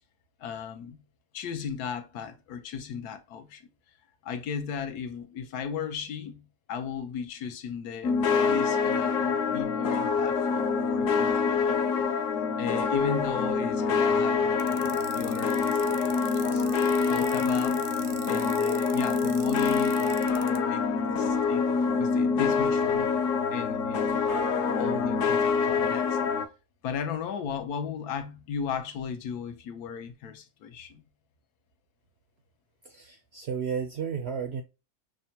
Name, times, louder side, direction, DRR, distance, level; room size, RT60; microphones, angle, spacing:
voice 1, 0.4-1.0 1.3-3.6 4.2-11.8 12.6-16.6 17.1-17.8 18.3-21.7 22.0-23.1 23.5-26.2 26.8-31.0, left 7 dB, 85° left, 1.2 m, -36 dB
sound 1, 8.0-26.5, left 5 dB, 65° left, 0.9 m, -26 dB
sound 2, 14.6-20.6, right 11 dB, 85° right, 1.1 m, -43 dB
voice 2, 32.8-34.6, right 7 dB, 70° right, 0.6 m, -33 dB
6.0 x 2.2 x 2.7 m
omnidirectional pair, 1.6 m